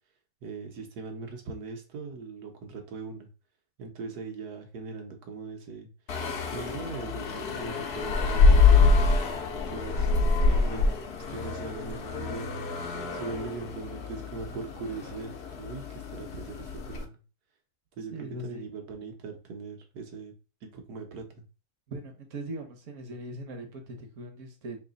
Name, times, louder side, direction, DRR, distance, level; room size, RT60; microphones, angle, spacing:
voice 1, 0.4-3.3 3.8-5.9 6.5-9.0 9.7-11.0 11.3-12.6 13.1-15.3 15.6-17.2 18.0-20.3 20.6-21.4, right 4 dB, 80° right, 4 dB, 1.4 m, -40 dB
sound 1, 6.1-17.0, left 4 dB, 55° left, 0.7 m, -26 dB
voice 2, 10.4-10.9 18.1-18.7 21.9-24.8, right 1 dB, 55° right, 5 dB, 1.1 m, -40 dB
3.3 x 2.8 x 3.9 m, 0.34 s
omnidirectional pair, 1.6 m